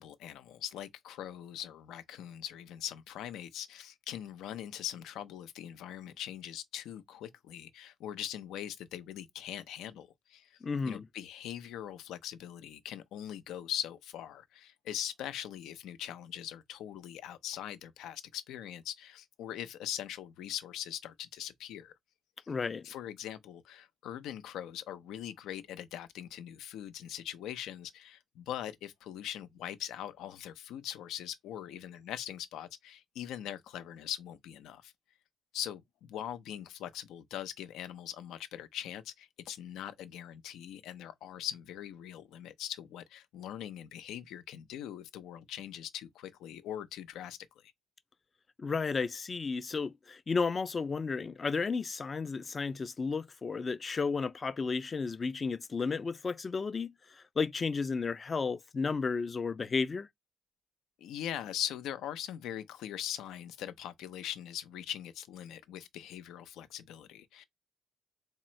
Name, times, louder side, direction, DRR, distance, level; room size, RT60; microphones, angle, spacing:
voice 1, 0.0-10.6 10.8-21.9 22.8-34.9 35.5-47.4 61.0-67.4, left 11 dB, 85° left, 0.5 m, -41 dB
voice 2, 10.6-11.1 22.5-22.9 48.6-60.1, left 4 dB, 35° left, 0.4 m, -33 dB
3.6 x 2.0 x 4.3 m
cardioid pair, 90°, 0 cm